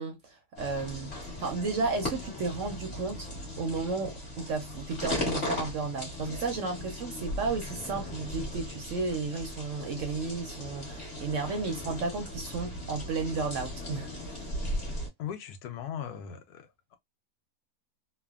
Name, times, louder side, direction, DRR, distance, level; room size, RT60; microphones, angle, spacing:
voice 1, 0.0-14.1, right 4 dB, 65° right, 0.8 m, -33 dB
sound 1, 0.6-15.1, left 1 dB, 40° left, 1.5 m, -37 dB
voice 2, 15.2-17.0, left 9 dB, 75° left, 1.1 m, -39 dB
3.2 x 2.1 x 2.2 m
omnidirectional pair, 1.7 m